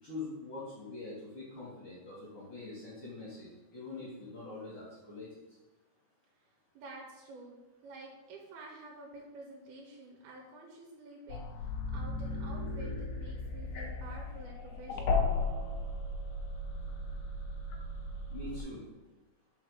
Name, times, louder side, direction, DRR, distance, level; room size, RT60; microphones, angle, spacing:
voice 1, 0.0-5.3 18.3-18.8, left 3 dB, 50° left, -6 dB, 1.8 m, -44 dB
voice 2, 6.7-7.6 7.8-15.2, right 2 dB, 70° right, -1 dB, 2.9 m, -50 dB
sound 1, 11.3-18.6, left 3 dB, 85° left, 1.8 m, -35 dB
5.7 x 5.3 x 6.4 m, 1.1 s
omnidirectional pair, 4.8 m